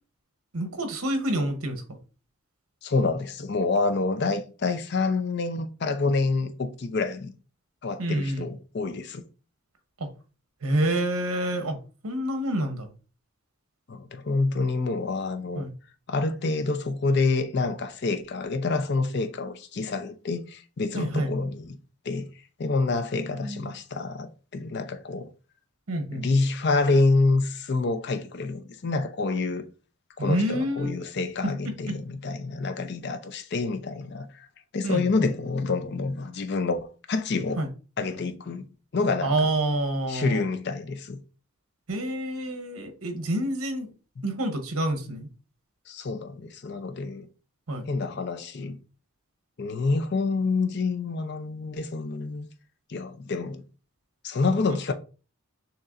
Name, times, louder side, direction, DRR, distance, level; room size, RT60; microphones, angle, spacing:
voice 1, 0.5-2.0 8.0-8.5 10.0-10.1 10.6-12.9 15.5-15.7 21.0-21.3 23.1-23.7 25.9-26.2 30.2-30.9 31.4-32.0 34.8-35.0 37.6-37.7 39.2-40.4 41.9-43.9 44.2-45.3 47.7-47.9, right 1 dB, 75° right, 0.9 m, -28 dB
voice 2, 2.8-7.3 7.8-9.2 13.9-15.7 16.1-21.8 22.0-22.3 22.6-25.3 26.1-29.7 30.2-34.5 34.7-37.6 38.0-38.7 38.9-39.3 40.1-41.2 44.2-44.3 45.9-47.3 47.9-48.8 49.6-52.5 52.9-53.6 54.2-54.9, left 3 dB, 50° left, 0.5 m, -27 dB
6.5 x 2.9 x 2.5 m
head